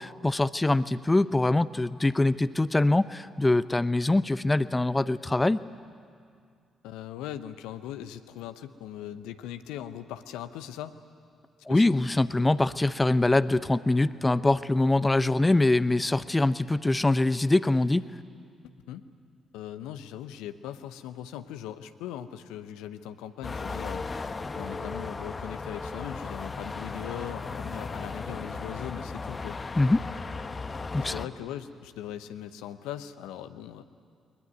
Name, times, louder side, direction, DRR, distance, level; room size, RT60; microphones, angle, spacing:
voice 1, 0.0-5.6 11.7-18.0 29.8-30.0 30.9-31.1, left 2 dB, 20° left, 15 dB, 0.7 m, -23 dB
voice 2, 6.8-10.9 11.7-12.0 18.9-19.0 19.5-29.6 31.0-33.8, left 11 dB, 75° left, 11 dB, 0.8 m, -40 dB
sound 1, 23.4-31.3, left 4 dB, 35° left, 1.1 m, -36 dB
21.5 x 20.5 x 9.5 m, 2.2 s
hypercardioid pair, 40°, 0 cm